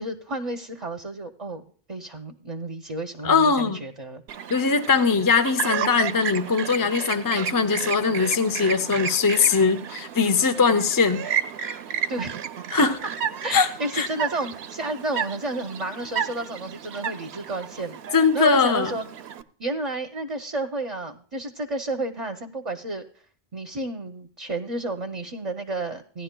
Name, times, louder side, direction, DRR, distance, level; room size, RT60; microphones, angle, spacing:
voice 1, 0.0-1.6 1.9-4.5 12.1-12.4 12.8-12.9 13.4-18.0 18.3-19.0 19.6-23.0 23.5-26.2, right 2 dB, 35° right, 6 dB, 0.7 m, -31 dB
voice 2, 3.2-3.8 4.5-11.2 12.7-13.0 13.5-13.7 13.9-14.1 18.1-19.0, left 5 dB, 30° left, 9 dB, 0.4 m, -21 dB
Chirp tweet, 4.3-19.4, right 8 dB, 85° right, 0.9 m, -32 dB
17.0 x 10.5 x 2.2 m, 0.44 s
omnidirectional pair, 1.1 m